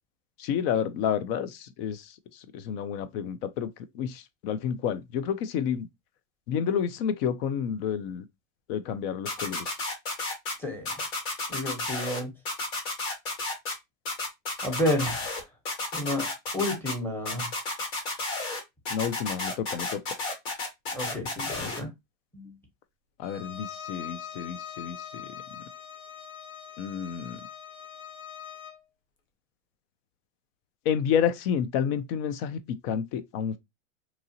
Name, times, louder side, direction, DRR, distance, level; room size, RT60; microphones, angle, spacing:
voice 1, 0.4-2.1 2.5-5.9 6.5-8.2 8.7-9.7 18.9-20.0 23.2-25.3 26.8-27.4 30.9-33.6, left 8 dB, 50° left, 0.5 m, -30 dB
sound 1, 9.3-10.5 10.9-12.2 12.5-13.7 14.1-15.4 15.7-16.9 17.3-18.6 18.9-21.8, left 3 dB, 65° left, 1.7 m, -32 dB
voice 2, 10.6-10.9 11.5-12.3 14.6-15.4 15.9-16.3 16.5-17.5 20.9-21.9 22.3-22.5, left 1 dB, 5° left, 1.1 m, -30 dB
Bowed string instrument, 23.2-28.8, left 8 dB, 80° left, 0.9 m, -42 dB
2.9 x 2.4 x 2.7 m
hypercardioid pair, 110°, 39 cm